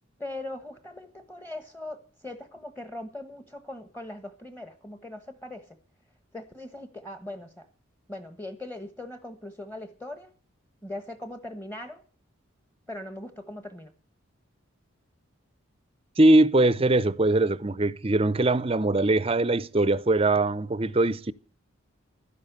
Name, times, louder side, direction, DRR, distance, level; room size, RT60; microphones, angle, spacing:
voice 1, 0.2-5.8 6.3-7.7 8.1-10.3 10.8-12.0 12.9-13.9, left 1 dB, 10° left, 1.2 m, -40 dB
voice 2, 16.2-21.3, right 2 dB, 25° right, 0.6 m, -22 dB
12.5 x 11.0 x 6.5 m
head